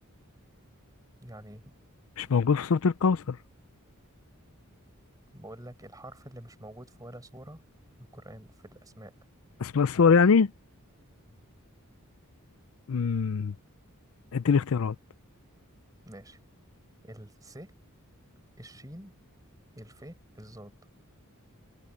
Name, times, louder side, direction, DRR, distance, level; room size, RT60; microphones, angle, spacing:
voice 1, 1.2-1.7 5.3-7.6 8.0-9.1 11.3-11.4 16.0-16.4 17.0-17.7 18.6-19.1 19.7-20.8, right 1 dB, 15° right, 5.1 m, -47 dB
voice 2, 2.2-3.4 9.6-10.5 12.9-13.6 14.3-15.0, left 5 dB, 70° left, 0.5 m, -23 dB
head